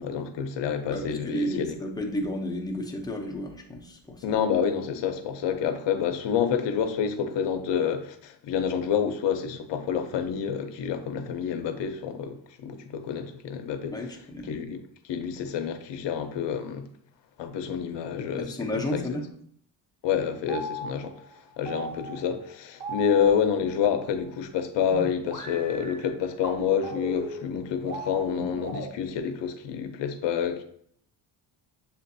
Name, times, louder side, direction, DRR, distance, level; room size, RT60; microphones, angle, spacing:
voice 1, 0.0-1.8 4.2-13.9 14.5-14.8 15.1-16.9 17.4-18.5 18.9-19.0 20.0-21.2 21.6-30.6, left 7 dB, 70° left, 0.7 m, -28 dB
voice 2, 0.9-4.4 13.9-14.6 18.4-19.3, left 1 dB, 10° left, 0.6 m, -32 dB
sound 1, 20.5-24.0 24.9-28.9, equal, 20° right, 1.0 m, -37 dB
7.1 x 2.5 x 2.6 m
cardioid pair, 130°, 45 cm